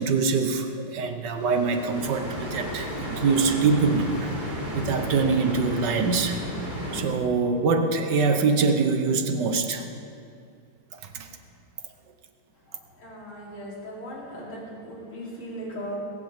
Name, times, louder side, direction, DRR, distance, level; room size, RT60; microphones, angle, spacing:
voice 1, 0.0-4.3 4.7-6.4 6.9-9.8 10.9-11.3, right 4 dB, 60° right, 6 dB, 1.6 m, -24 dB
sound 1, 1.3-7.0, equal, 25° right, 3.4 m, -33 dB
voice 2, 12.7-16.0, equal, 80° left, -6 dB, 4.8 m, -38 dB
20.5 x 15.5 x 3.7 m, 2.3 s
omnidirectional pair, 2.4 m